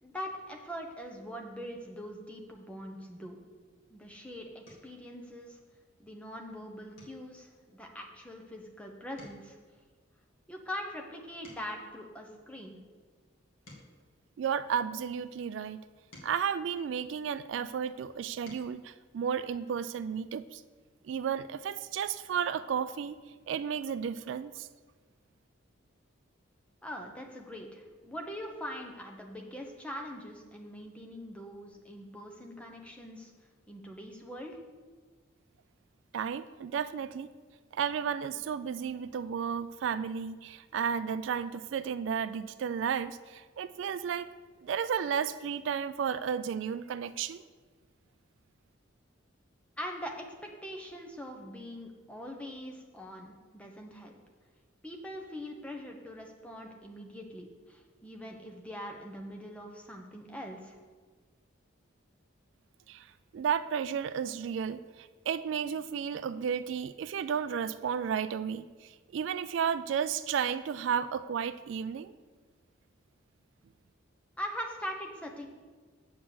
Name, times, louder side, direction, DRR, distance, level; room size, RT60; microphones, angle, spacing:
voice 1, 0.0-3.4 3.9-5.6 6.0-9.6 10.5-12.8 26.8-33.3 33.7-34.6 49.8-50.3 50.6-54.1 54.8-60.8 74.4-75.5, equal, 5° left, 1 dB, 0.9 m, -42 dB
sound 1, 4.6-5.0 5.5-5.9 6.2-6.4 6.9-8.7 9.0-12.0 12.6-15.0 15.7-17.6 18.1-18.8 20.2-20.3 20.6-20.8, left 1 dB, 75° left, 2.1 m, -58 dB
voice 2, 14.4-15.8 16.2-20.6 21.0-23.2 23.5-24.7 36.1-37.3 37.7-44.3 44.6-47.4 62.9-72.1, right 7 dB, 65° right, 14 dB, 0.3 m, -33 dB
8.0 x 5.3 x 7.1 m, 1.5 s
head